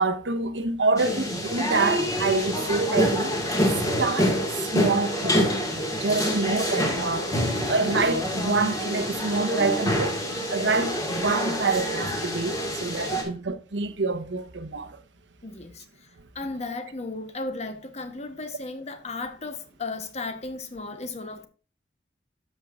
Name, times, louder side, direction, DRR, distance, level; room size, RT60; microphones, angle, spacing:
voice 1, 0.0-3.4 4.0-4.4 4.6-5.5 6.0-7.3 7.6-10.2 10.5-14.9, right 3 dB, 85° right, 0.9 m, -26 dB
sound 1, 1.0-13.2, equal, 20° left, 1.8 m, -26 dB
voice 2, 15.4-15.8 16.3-21.5, left 3 dB, 40° left, 1.0 m, -35 dB
13.0 x 5.5 x 2.4 m
head